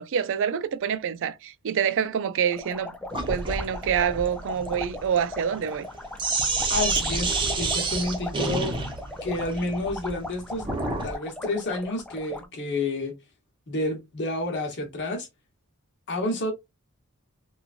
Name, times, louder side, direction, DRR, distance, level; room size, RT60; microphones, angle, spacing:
voice 1, 0.0-3.0 3.3-5.9, right 8 dB, 60° right, 0.4 m, -26 dB
sound 1, 2.5-12.5, left 2 dB, 5° left, 0.3 m, -38 dB
Sink (filling or washing), 3.1-11.1, right 3 dB, 20° right, 0.7 m, -29 dB
voice 2, 6.7-8.7 9.2-10.7 11.0-13.1 13.7-15.3 16.1-16.5, left 2 dB, 55° left, 1.0 m, -29 dB
3.0 x 2.3 x 2.4 m
head